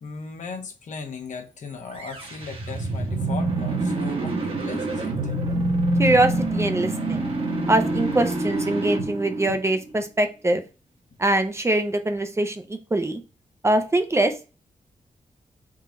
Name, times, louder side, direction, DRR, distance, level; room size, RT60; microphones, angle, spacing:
voice 1, 0.0-5.3, left 5 dB, 70° left, 1.0 m, -37 dB
sound 1, 1.9-10.0, right 2 dB, 45° right, 1.2 m, -26 dB
voice 2, 6.0-7.3 7.7-10.6 11.2-13.2 13.6-14.3, right 2 dB, 20° right, 0.5 m, -23 dB
3.7 x 2.8 x 4.8 m
wide cardioid pair, 140°, 13 cm